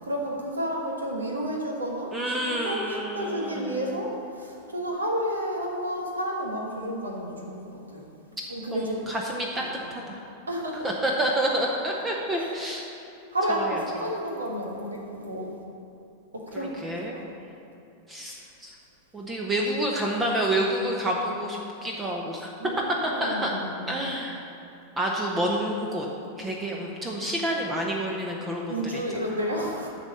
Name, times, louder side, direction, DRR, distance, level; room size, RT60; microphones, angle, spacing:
voice 1, 0.0-8.1 8.5-9.2 9.6-9.7 10.0-10.2 10.5-10.9 12.3-12.5 13.3-15.5 16.3-17.2 22.6-24.0 28.7-29.9, equal, 75° right, 0 dB, 1.3 m, -31 dB
voice 2, 2.1-3.8 8.7-9.6 9.9-10.2 10.8-12.8 13.5-13.8 16.5-17.2 18.1-18.7 19.1-22.5 23.0-23.5 23.9-24.5 25.0-26.1 26.4-29.2 29.5-29.7, right 1 dB, 15° right, -1 dB, 0.9 m, -29 dB
10.5 x 4.1 x 6.7 m, 2.8 s
figure-of-eight pair, 90°, 0 cm